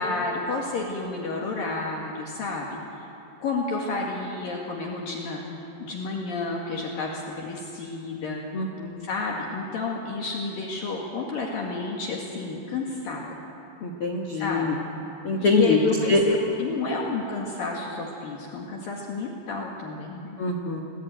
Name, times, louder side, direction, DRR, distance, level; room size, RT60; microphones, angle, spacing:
voice 1, 0.0-2.8 3.4-8.4 9.0-13.3 14.3-14.7 15.4-20.4, left 3 dB, 60° left, -1 dB, 3.4 m, -30 dB
voice 2, 8.5-9.1 13.8-14.7 15.2-15.8 16.1-16.2 20.4-20.8, left 3 dB, 90° left, 1 dB, 1.2 m, -24 dB
26.0 x 18.5 x 9.1 m, 2.9 s
omnidirectional pair, 5.1 m